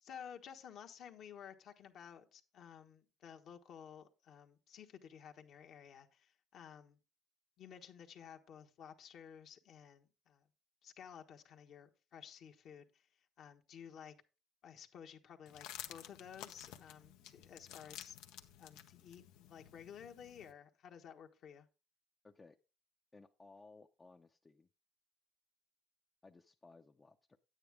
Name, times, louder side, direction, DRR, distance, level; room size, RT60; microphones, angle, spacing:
voice 1, 0.0-7.0 7.6-10.4 10.8-13.0 13.4-14.1 14.6-18.2 18.6-21.7, left 8 dB, 60° left, 3 dB, 1.3 m, -54 dB
sound 1, 15.5-20.5, left 11 dB, 85° left, 0.9 m, -53 dB
voice 2, 22.2-22.6 23.1-24.7 26.2-27.4, left 3 dB, 25° left, 4 dB, 0.6 m, -60 dB
9.4 x 9.0 x 3.6 m, 0.31 s
supercardioid pair, 85°, 0 cm